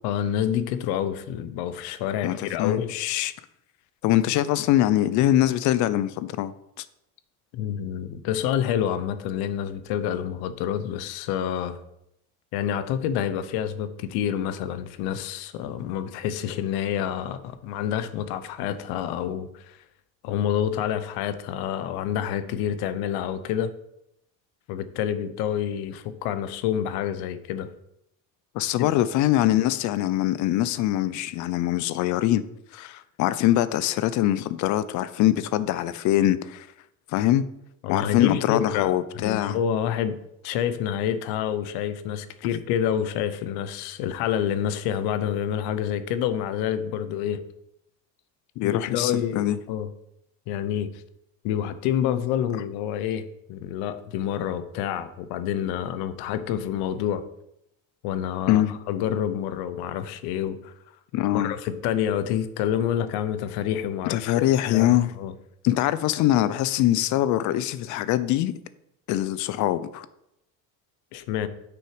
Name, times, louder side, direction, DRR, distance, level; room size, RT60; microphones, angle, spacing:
voice 1, 0.0-2.9 7.5-11.8 12.5-19.8 20.2-23.7 24.7-27.7 28.8-28.9 37.8-40.2 40.4-47.4 48.6-49.9 50.5-51.0 51.4-57.3 58.0-60.7 61.3-65.3 71.1-71.5, left 9 dB, 90° left, 0.7 m, -28 dB
voice 2, 2.2-3.3 4.0-6.5 6.8-6.9 28.5-32.4 32.7-36.7 37.1-37.4 37.9-39.6 48.6-49.6 58.5-58.8 61.1-61.5 64.1-65.1 65.6-68.5 69.1-70.1, left 13 dB, 55° left, 0.5 m, -23 dB
6.2 x 5.9 x 4.8 m
cardioid pair, 170°, 37 cm